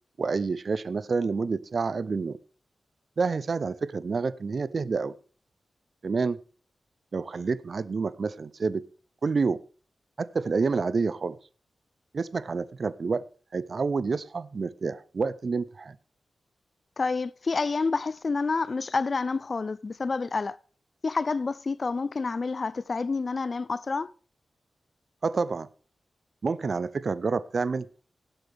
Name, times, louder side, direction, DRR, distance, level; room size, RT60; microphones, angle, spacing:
voice 1, 0.2-2.4 3.2-5.1 6.0-6.4 7.1-8.8 9.2-9.6 10.2-11.4 12.1-13.2 13.5-16.0 25.2-25.7 26.4-28.0, right 4 dB, 50° right, 0.5 m, -28 dB
voice 2, 17.0-20.6 21.0-24.1, left 4 dB, 40° left, 0.4 m, -28 dB
17.5 x 8.0 x 3.4 m
wide cardioid pair, 140°, 0 cm